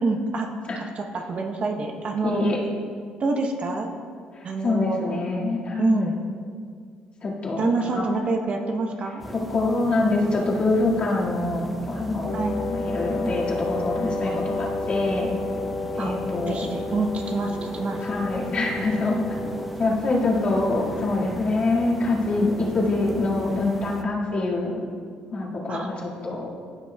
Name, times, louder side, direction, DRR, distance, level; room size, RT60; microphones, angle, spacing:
voice 1, 0.0-0.5 0.8-2.5 3.2-3.9 4.4-5.2 5.8-6.2 7.6-9.2 12.3-12.6 16.0-16.1 16.5-18.1 25.7-25.9, right 3 dB, 45° right, 3 dB, 0.8 m, -26 dB
voice 2, 2.2-2.6 4.6-6.1 7.2-8.0 9.3-12.3 12.7-15.3 15.9-16.7 18.0-19.2 19.8-24.8 25.3-26.5, left 2 dB, 45° left, -4 dB, 1.9 m, -25 dB
sound 1, 9.2-24.0, equal, 5° right, 0.8 m, -38 dB
Wind instrument woodwind instrument, 12.2-19.9, left 2 dB, 60° left, 0.6 m, -31 dB
14.0 x 6.0 x 2.3 m, 2.1 s
cardioid pair, 85°, 3 cm